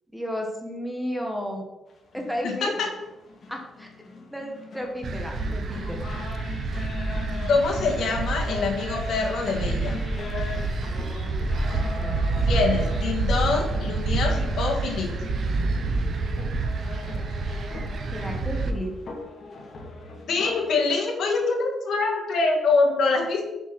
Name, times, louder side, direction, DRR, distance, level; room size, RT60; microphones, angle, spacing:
voice 1, 0.1-1.6 2.1-2.7 3.5-3.9 4.1-6.0 11.8-12.1 18.1-18.9, equal, ahead, 1 dB, 1.4 m, -33 dB
sound 1, 1.9-20.7, left 3 dB, 45° left, 2.0 m, -39 dB
voice 2, 2.4-2.9 7.5-10.0 12.5-15.1 20.3-23.5, left 3 dB, 65° left, 1 dB, 2.0 m, -25 dB
sound 2, 5.0-18.7, right 3 dB, 50° right, 0.8 m, -28 dB
6.9 x 6.0 x 6.2 m, 0.99 s
cardioid pair, 140°, 0 cm